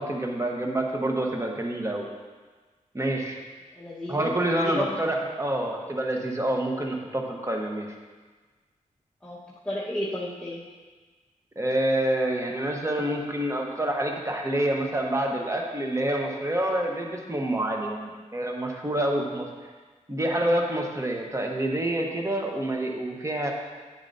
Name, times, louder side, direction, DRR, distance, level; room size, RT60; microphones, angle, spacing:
voice 1, 0.0-2.0 2.9-3.4 4.1-7.9 11.6-19.5 20.1-23.5, right 1 dB, 20° right, 1 dB, 1.3 m, -27 dB
voice 2, 3.7-5.0 9.2-10.6, left 1 dB, 5° left, -8 dB, 1.4 m, -33 dB
9.9 x 7.2 x 2.8 m, 1.4 s
cardioid pair, 55°, 14 cm